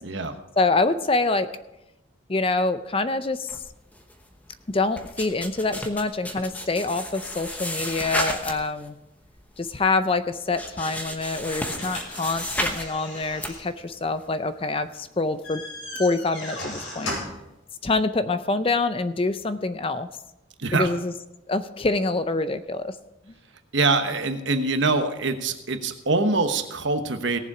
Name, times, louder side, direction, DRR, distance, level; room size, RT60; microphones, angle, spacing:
voice 1, 0.0-0.3 20.6-20.9 23.7-27.4, right 3 dB, 65° right, 7 dB, 1.1 m, -24 dB
voice 2, 0.6-1.5 2.3-3.6 4.7-9.0 9.6-15.6 16.0-17.1 17.8-20.1 20.7-21.1 21.5-23.0, left 3 dB, 25° left, 11 dB, 0.5 m, -25 dB
sound 1, 3.5-4.5 4.7-8.9 9.2-9.7 10.1-10.2 10.5-12.9 13.2-13.5, left 1 dB, 10° left, 1.0 m, -32 dB
sound 2, 11.6-17.5, left 1 dB, 85° left, 5.6 m, -37 dB
18.0 x 7.3 x 4.9 m, 0.92 s
head